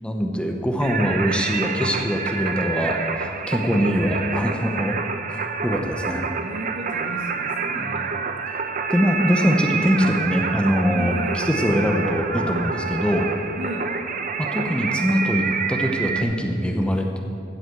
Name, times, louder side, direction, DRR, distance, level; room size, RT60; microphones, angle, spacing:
voice 1, 0.0-5.0 5.3-6.3 7.7-8.0 8.5-8.6 8.9-13.3 14.4-17.2, equal, 5° left, 2 dB, 0.7 m, -23 dB
Singing, 0.8-16.2, right 5 dB, 40° right, 0.6 m, -28 dB
voice 2, 6.4-8.1 10.9-11.4 13.6-13.9, equal, 70° right, 3 dB, 1.4 m, -34 dB
14.0 x 5.7 x 7.8 m, 2.4 s
head